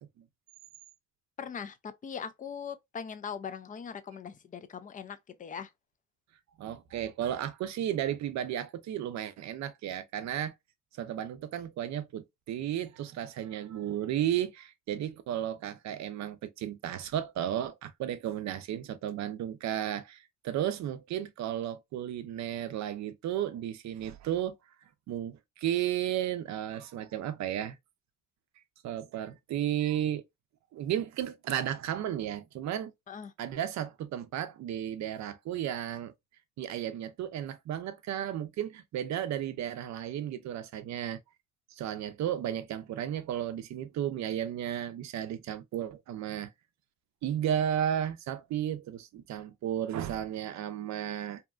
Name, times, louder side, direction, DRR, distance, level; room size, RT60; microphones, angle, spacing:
voice 1, 1.4-5.7 33.1-33.3, left 7 dB, 25° left, 0.4 m, -40 dB
voice 2, 6.6-10.5 10.9-24.6 25.1-27.8 28.8-30.2 30.7-32.9 33.4-36.1 36.6-41.2 41.7-46.5 47.2-51.4, right 10 dB, 65° right, 0.5 m, -33 dB
2.8 x 2.2 x 2.2 m
cardioid pair, 90°, 30 cm